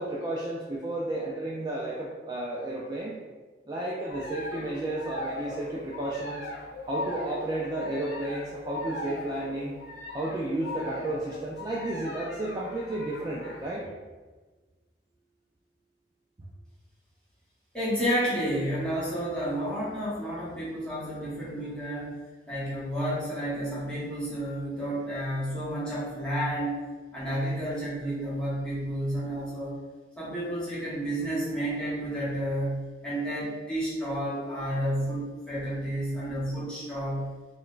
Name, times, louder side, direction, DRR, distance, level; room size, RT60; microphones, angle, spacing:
voice 1, 0.0-3.2 3.7-6.5 6.9-9.8 10.1-13.9, right 1 dB, 25° right, -5 dB, 0.3 m, -32 dB
sound 1, 4.1-13.7, left 2 dB, 60° left, 0.5 m, -39 dB
voice 2, 17.7-22.2 22.5-26.8 27.1-29.8 30.2-37.3, equal, 5° left, -10 dB, 1.0 m, -31 dB
3.8 x 2.2 x 2.4 m, 1.3 s
head